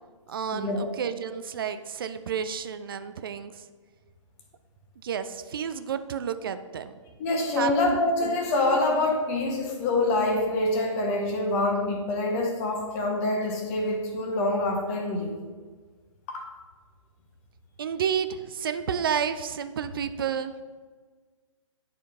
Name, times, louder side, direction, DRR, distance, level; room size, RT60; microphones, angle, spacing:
voice 1, 0.3-3.5 5.0-6.9 7.6-8.4 17.8-20.5, right 7 dB, 45° right, 10 dB, 0.4 m, -31 dB
voice 2, 7.2-15.3 16.3-16.5, left 2 dB, 25° left, 1 dB, 1.3 m, -26 dB
10.0 x 4.6 x 3.4 m, 1.4 s
figure-of-eight pair, 130°, 17 cm